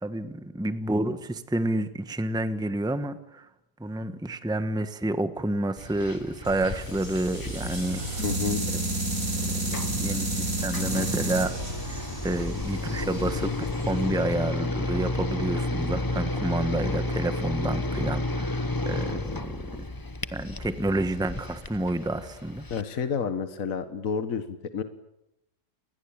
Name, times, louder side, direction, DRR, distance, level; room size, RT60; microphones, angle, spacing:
voice 1, 0.0-3.5 3.8-8.2 8.7-8.8 9.4-11.5 11.9-19.6 20.3-22.7, right 1 dB, 5° right, 10 dB, 1.3 m, -29 dB
sound 1, 5.8-22.8, left 2 dB, 20° left, 0.8 m, -32 dB
sound 2, 6.4-14.5, right 1 dB, 55° right, 7.8 m, -31 dB
voice 2, 8.2-8.6 22.7-24.8, left 6 dB, 60° left, 10 dB, 1.7 m, -29 dB
29.5 x 21.5 x 8.8 m, 0.86 s
omnidirectional pair, 1.6 m